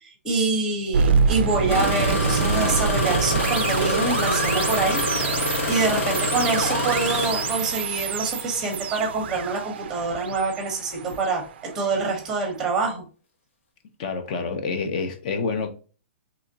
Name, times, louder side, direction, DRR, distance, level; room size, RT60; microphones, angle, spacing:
voice 1, 0.0-5.0 5.7-13.0, right 3 dB, 10° right, 0.8 m, -26 dB
sound 1, 0.9-12.0, right 6 dB, 55° right, 0.4 m, -26 dB
Engine starting, 1.7-8.1 9.1-9.4 10.0-10.4 11.0-11.2, left 2 dB, 90° left, 1.2 m, -26 dB
voice 2, 14.0-15.7, left 4 dB, 40° left, 0.5 m, -27 dB
3.4 x 2.9 x 2.7 m
hypercardioid pair, 170°, 7 cm